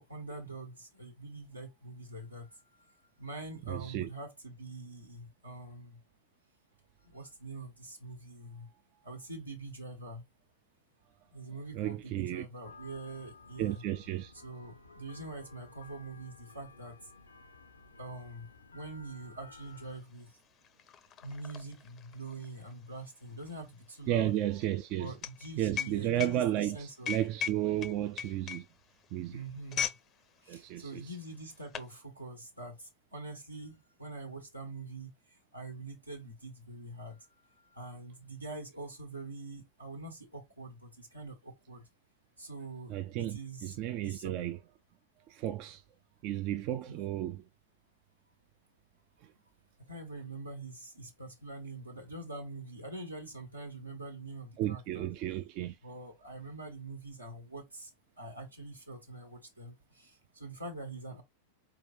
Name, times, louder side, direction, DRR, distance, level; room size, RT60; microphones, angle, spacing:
voice 1, 0.0-2.5 3.2-6.0 7.1-8.7 9.0-10.2 11.3-13.8 14.3-17.0 18.0-20.3 21.2-24.3 25.0-27.2 29.3-29.9 30.4-35.1 35.5-37.2 37.7-41.8 42.4-43.8 44.0-44.3 46.9-47.0 49.9-55.1 55.8-57.9 58.2-61.2, right 2 dB, 85° right, 1.5 m, -44 dB
voice 2, 3.7-4.1 11.7-12.4 13.6-14.3 24.1-25.1 25.6-28.7 29.1-29.4 30.5-31.0 42.9-44.6 45.3-45.8 46.2-47.4 54.6-55.8, right 13 dB, 40° right, 0.4 m, -33 dB
sound 1, 12.6-20.0, left 4 dB, 75° left, 0.6 m, -55 dB
sound 2, 19.8-19.9 20.1-30.1 30.4-30.6 31.3-31.9, left 9 dB, 30° left, 0.6 m, -39 dB
4.4 x 3.3 x 3.0 m
figure-of-eight pair, 90°, 0 cm